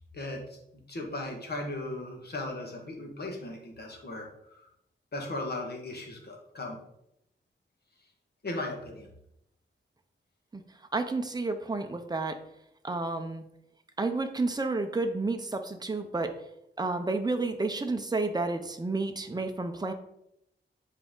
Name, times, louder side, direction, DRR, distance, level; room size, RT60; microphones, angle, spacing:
voice 1, 0.1-0.6 0.9-4.3 4.5-4.7 5.1-6.8 8.4-9.1, left 2 dB, 55° left, 1 dB, 1.5 m, -37 dB
voice 2, 10.9-12.4 12.8-13.4 14.0-16.3 16.8-19.9, right 3 dB, 20° right, 6 dB, 0.7 m, -30 dB
7.6 x 4.5 x 3.8 m, 0.78 s
wide cardioid pair, 145°, 20 cm